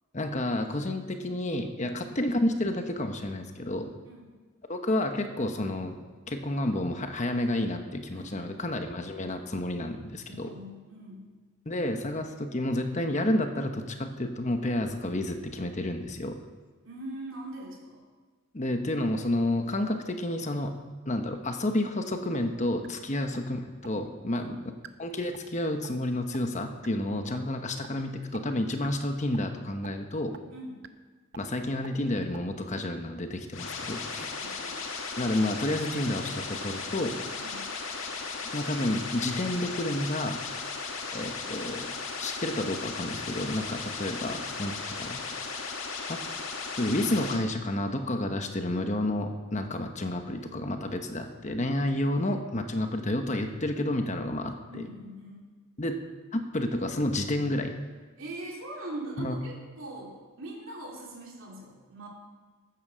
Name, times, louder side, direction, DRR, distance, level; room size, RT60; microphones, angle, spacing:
voice 1, 0.1-3.9 4.7-6.0 6.3-10.5 11.7-16.4 18.5-20.7 21.1-24.6 25.0-30.3 31.4-34.3 35.2-37.2 38.5-40.4 41.1-41.9 42.2-45.2 46.1-46.2 46.8-54.9 55.8-56.0 56.3-57.7 59.2-59.4, left 1 dB, 35° left, 6 dB, 1.0 m, -30 dB
voice 2, 8.1-8.7 10.2-11.4 16.8-18.0 24.3-24.7 27.0-27.2 30.5-30.8 34.3-34.9 37.3-37.7 50.3-50.9 51.8-52.0 54.7-55.5 58.2-62.1, right 1 dB, 70° right, -2 dB, 2.9 m, -42 dB
sound 1, 22.3-22.5 22.8-22.9 23.3-23.4 23.8-23.9 24.3-24.4 24.8-24.9 25.3-25.5 25.8-26.0 26.3-26.4 26.8-26.9 27.3-27.4 27.8-27.9 28.3-28.4 28.8-29.0 29.3-29.5 29.8-29.9 30.3-30.4 30.8-30.9 31.3-31.4 31.8-31.9 32.3-32.4, right 5 dB, 55° right, 0.7 m, -45 dB
sound 2, 33.5-47.4, left 4 dB, 70° left, 2.0 m, -36 dB
14.5 x 9.1 x 6.3 m, 1.4 s
head